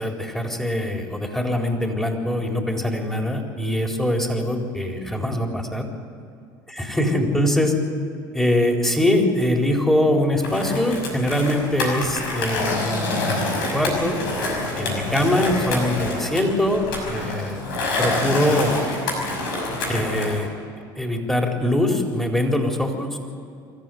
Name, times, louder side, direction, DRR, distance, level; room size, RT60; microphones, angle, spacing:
voice 1, 0.0-5.9 6.7-7.8 8.3-14.2 14.8-17.6 18.0-18.7 19.9-20.5 21.0-23.2, left 1 dB, 5° left, 2 dB, 4.3 m, -23 dB
Skateboard, 10.4-20.4, left 2 dB, 80° left, 5.8 m, -27 dB
24.5 x 14.5 x 9.4 m, 2.4 s
hypercardioid pair, 75°, 11 cm